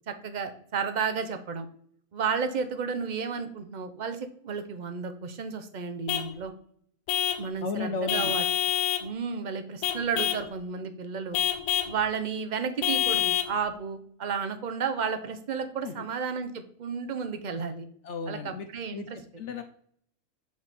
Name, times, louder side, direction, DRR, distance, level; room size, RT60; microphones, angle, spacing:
voice 1, 0.1-1.7 2.1-6.5 7.4-8.4 9.0-11.4 11.9-17.9 18.3-19.2, right 6 dB, 55° right, 7 dB, 0.5 m, -32 dB
Vehicle horn car horn honking / Truck, 6.1-6.3 7.1-7.5 8.1-9.1 9.8-10.5 11.3-12.0 12.8-13.6, left 11 dB, 90° left, 1.2 m, -27 dB
voice 2, 7.6-8.3 15.8-16.1 18.0-19.6, left 4 dB, 65° left, 8 dB, 0.8 m, -35 dB
7.8 x 4.1 x 3.4 m, 0.63 s
omnidirectional pair, 1.6 m